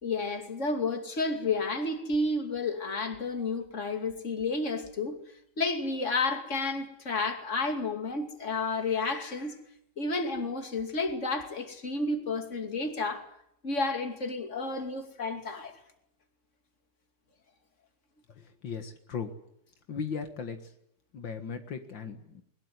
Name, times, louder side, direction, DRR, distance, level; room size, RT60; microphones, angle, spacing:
voice 1, 0.0-5.2 5.6-9.6 10.0-13.3 13.6-15.8, left 3 dB, 40° left, 3.0 m, -31 dB
voice 2, 18.4-19.3 19.9-20.7 21.1-22.4, left 6 dB, 75° left, 2.4 m, -37 dB
21.5 x 21.0 x 9.6 m
omnidirectional pair, 2.0 m